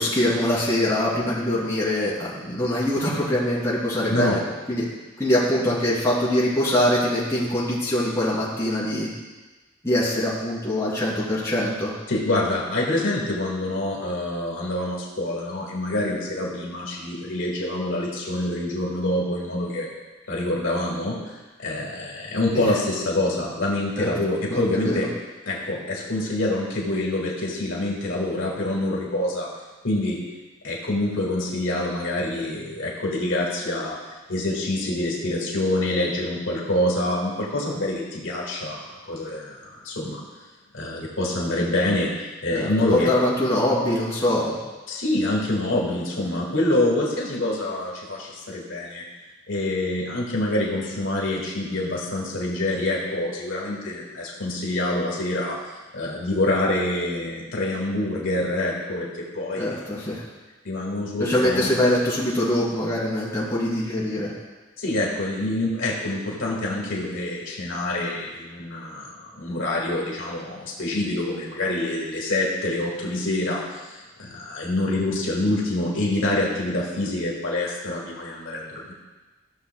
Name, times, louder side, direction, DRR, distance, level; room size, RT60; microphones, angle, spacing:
voice 1, 0.0-4.4 4.7-4.9 5.2-9.1 9.8-11.9 22.5-22.7 24.0-24.1 24.5-25.1 42.5-44.5 59.6-60.2 61.2-64.3, left 1 dB, 15° left, -8 dB, 2.9 m, -23 dB
voice 2, 12.1-19.9 20.3-21.2 21.6-25.1 25.5-29.5 29.8-30.2 30.6-34.0 34.3-39.6 39.8-40.2 40.7-43.1 44.9-49.0 49.5-55.6 55.9-59.8 60.6-61.7 64.8-69.1 69.4-78.9, left 1 dB, 85° left, -3 dB, 2.0 m, -26 dB
15.0 x 6.8 x 2.3 m, 1.2 s
head